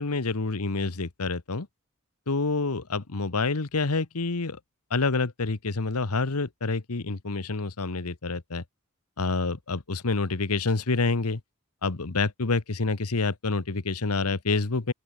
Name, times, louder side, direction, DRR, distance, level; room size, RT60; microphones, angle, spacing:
voice 1, 0.0-1.7 2.3-4.6 4.9-8.6 9.2-11.4 11.8-14.9, left 3 dB, 90° left, 1.2 m, -27 dB
open air
head